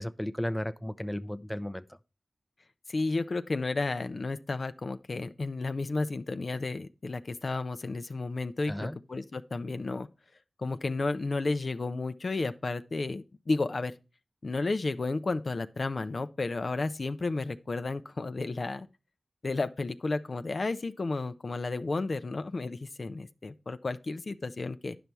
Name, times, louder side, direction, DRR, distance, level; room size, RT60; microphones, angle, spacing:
voice 1, 0.0-2.0 8.7-9.0, left 1 dB, 10° left, 0.5 m, -34 dB
voice 2, 2.9-10.1 10.6-13.9 14.4-18.9 19.4-25.0, left 3 dB, 60° left, 0.5 m, -32 dB
10.0 x 5.5 x 4.5 m
cardioid pair, 40°, 0 cm